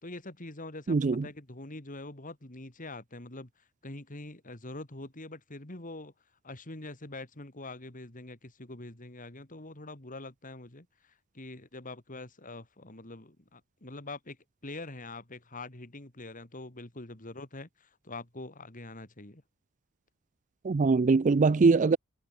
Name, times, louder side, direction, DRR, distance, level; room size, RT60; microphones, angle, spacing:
voice 1, 0.0-6.1 6.4-19.4, left 2 dB, 40° left, 2.9 m, -44 dB
voice 2, 0.9-1.2 20.6-22.0, right 4 dB, 35° right, 0.4 m, -22 dB
head